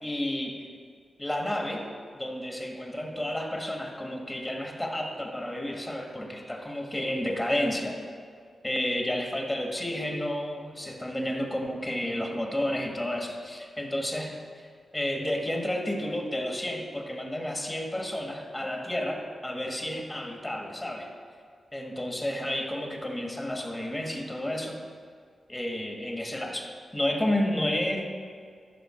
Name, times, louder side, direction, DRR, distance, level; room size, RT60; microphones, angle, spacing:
voice 1, 0.0-0.6 1.2-1.9 2.1-8.0 8.6-14.7 14.9-21.1 21.7-24.8 25.5-28.1, left 1 dB, 20° left, 1 dB, 1.8 m, -31 dB
13.5 x 5.7 x 4.5 m, 2.1 s
cardioid pair, 55°, 0 cm